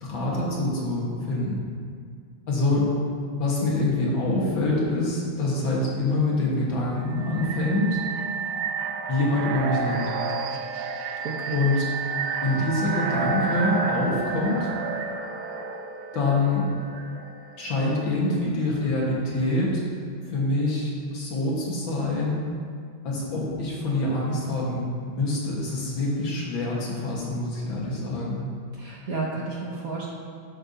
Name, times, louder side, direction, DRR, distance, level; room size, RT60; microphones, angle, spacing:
voice 1, 0.0-1.7 2.5-2.9 3.4-8.0 9.1-10.2 11.5-11.8 12.4-14.7 16.1-16.7 17.6-19.8 20.3-22.4 23.0-28.5, left 2 dB, 65° left, -4 dB, 2.3 m, -25 dB
sound 1, 7.1-17.9, right 4 dB, 80° right, 1.4 m, -31 dB
voice 2, 11.2-11.5 28.7-30.1, right 3 dB, 50° right, -3 dB, 1.2 m, -32 dB
10.5 x 8.1 x 2.8 m, 2.2 s
omnidirectional pair, 2.3 m